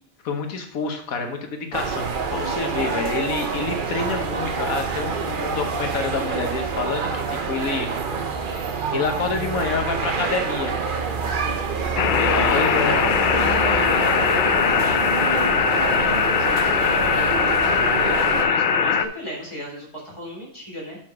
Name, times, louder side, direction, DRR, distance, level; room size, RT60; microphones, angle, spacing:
voice 1, 0.2-7.9 8.5-8.7 8.9-10.7 12.3-13.0, left 4 dB, 90° left, 4 dB, 1.5 m, -28 dB
sound 1, 1.7-18.4, right 5 dB, 45° right, 0.8 m, -27 dB
voice 2, 2.5-3.2 11.3-11.6 12.2-12.7 13.0-15.0 15.3-17.4 17.9-21.0, equal, 20° left, -3 dB, 3.2 m, -34 dB
sound 2, 12.0-19.1, left 7 dB, 75° left, 0.4 m, -20 dB
6.7 x 5.8 x 4.9 m, 0.66 s
omnidirectional pair, 1.4 m